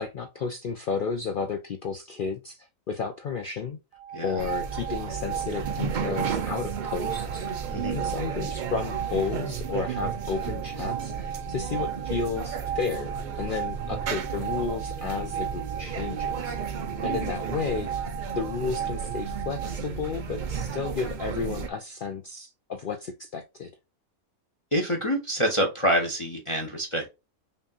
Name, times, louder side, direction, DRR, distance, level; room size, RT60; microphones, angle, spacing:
voice 1, 0.0-3.8 4.2-7.5 7.9-16.6 17.0-23.7, left 5 dB, 75° left, 0.4 m, -32 dB
sound 1, 3.9-19.7, right 9 dB, 60° right, 0.8 m, -36 dB
voice 2, 4.1-4.4 7.7-8.0 24.7-27.1, equal, 30° left, 0.6 m, -26 dB
sound 2, 4.4-21.7, right 6 dB, 75° right, 0.4 m, -33 dB
5.4 x 2.7 x 2.4 m
omnidirectional pair, 1.5 m